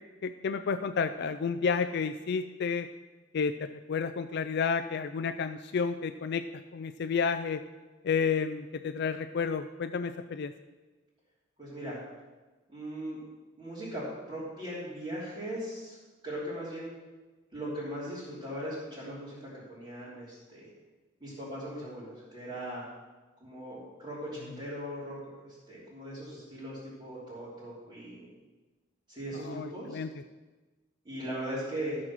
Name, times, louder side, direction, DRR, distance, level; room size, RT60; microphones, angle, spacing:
voice 1, 0.2-2.9 3.3-6.4 6.7-7.6 8.0-10.5 29.4-30.1, left 5 dB, 55° left, 9 dB, 0.4 m, -31 dB
voice 2, 11.6-12.0 12.7-13.2 13.6-16.0 16.2-16.9 17.5-20.7 21.2-22.8 23.4-28.3 29.1-30.0 31.0-32.0, equal, 25° right, -11 dB, 3.2 m, -39 dB
13.0 x 6.4 x 6.1 m, 1.2 s
head